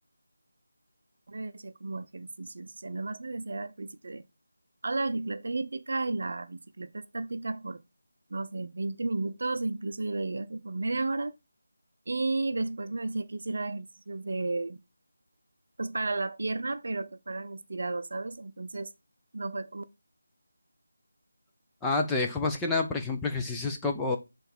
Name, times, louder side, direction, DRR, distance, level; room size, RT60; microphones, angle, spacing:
voice 1, 1.3-4.3 4.8-7.8 8.3-11.3 12.1-14.8 15.8-18.9 19.3-19.8, right 2 dB, 50° right, 0.6 m, -33 dB
voice 2, 21.8-24.2, left 3 dB, 5° left, 0.6 m, -28 dB
6.7 x 3.9 x 4.4 m
figure-of-eight pair, 160°, 0 cm